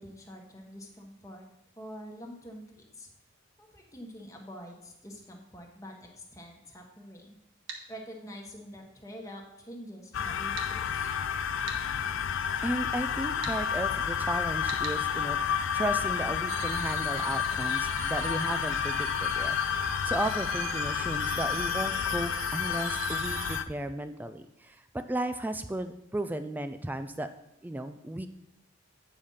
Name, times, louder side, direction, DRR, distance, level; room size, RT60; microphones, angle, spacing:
voice 1, 0.0-1.5 1.8-3.1 3.6-7.4 7.9-11.1, equal, 15° left, 0 dB, 1.2 m, -46 dB
sound 1, 7.7-7.8 10.6-10.7 11.7-11.8 13.4-13.6 14.7-15.0, right 4 dB, 65° right, 1.3 m, -39 dB
sound 2, 10.1-23.6, left 8 dB, 65° left, 0.4 m, -30 dB
voice 2, 12.6-27.3 27.6-28.3, right 1 dB, 10° right, 9 dB, 0.3 m, -35 dB
sound 3, 16.5-23.6, right 8 dB, 90° right, 0.6 m, -40 dB
8.8 x 5.0 x 5.5 m, 0.85 s
head